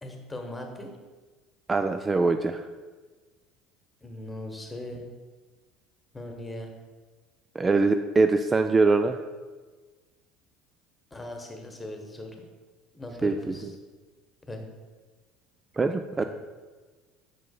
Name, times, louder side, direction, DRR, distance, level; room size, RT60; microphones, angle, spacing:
voice 1, 0.0-0.9 4.0-5.1 6.1-6.7 11.1-12.4 12.9-13.7 14.5-14.7 16.2-16.3, left 1 dB, 15° left, 3 dB, 1.2 m, -39 dB
voice 2, 1.7-2.7 7.6-9.2 13.2-13.5 15.8-16.2, right 3 dB, 20° right, 7 dB, 0.3 m, -23 dB
8.8 x 5.5 x 2.3 m, 1.3 s
figure-of-eight pair, 65°, 0 cm